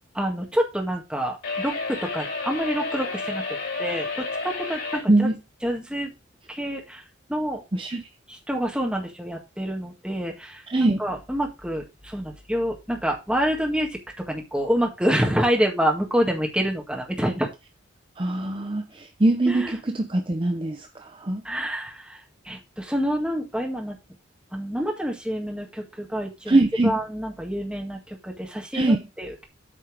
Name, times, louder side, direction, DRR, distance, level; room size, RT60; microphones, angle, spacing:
voice 1, 0.2-3.4 3.8-5.3 5.6-6.1 6.5-7.0 7.3-7.6 8.3-10.6 11.0-14.0 14.3-17.5 19.5-19.7 21.5-22.2 22.5-24.0 24.5-26.6 26.8-28.8 29.2-29.3, equal, 5° right, 1.8 m, -27 dB
sound 1, 1.4-5.1, left 3 dB, 70° left, 4.8 m, -31 dB
voice 2, 5.1-5.4 7.7-8.1 10.7-11.0 18.2-21.4 26.5-27.0 28.7-29.1, right 2 dB, 25° right, 0.6 m, -22 dB
8.7 x 4.5 x 6.1 m
head